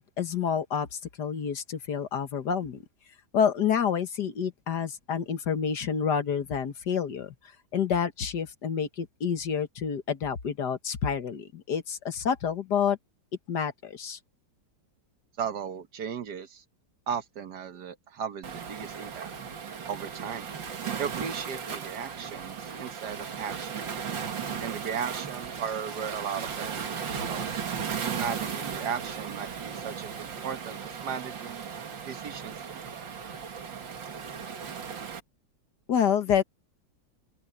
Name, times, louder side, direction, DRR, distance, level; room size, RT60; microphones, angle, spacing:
voice 1, 0.0-2.8 3.3-7.3 7.7-13.0 13.5-14.2 35.9-36.4, left 7 dB, 65° left, 1.9 m, -28 dB
voice 2, 15.4-16.6 17.1-19.3 19.9-20.5 21.0-23.8 24.6-27.6 28.2-31.7 32.0-33.1, right 7 dB, 65° right, 1.7 m, -36 dB
Waves surf, 18.4-35.2, right 7 dB, 85° right, 2.6 m, -36 dB
open air
omnidirectional pair, 2.0 m